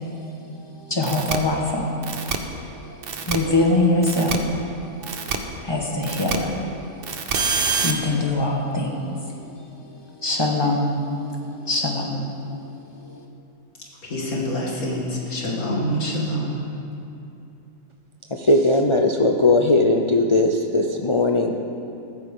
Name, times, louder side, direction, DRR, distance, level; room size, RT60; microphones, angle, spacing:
voice 1, 0.9-1.8 3.3-4.4 5.0-5.1 5.6-6.6 7.8-9.1 10.2-11.0 11.7-12.2, left 2 dB, 20° left, -1 dB, 1.4 m, -22 dB
sound 1, 1.0-1.4 2.0-2.4 3.0-3.4 4.0-4.4 5.0-5.4 6.0-6.4 7.0-7.9, right 5 dB, 50° right, 0.9 m, -25 dB
voice 2, 14.0-16.6, equal, 80° left, -3 dB, 2.6 m, -26 dB
voice 3, 18.3-21.6, left 2 dB, 50° left, 2 dB, 0.3 m, -19 dB
15.0 x 13.5 x 3.8 m, 2.6 s
omnidirectional pair, 1.5 m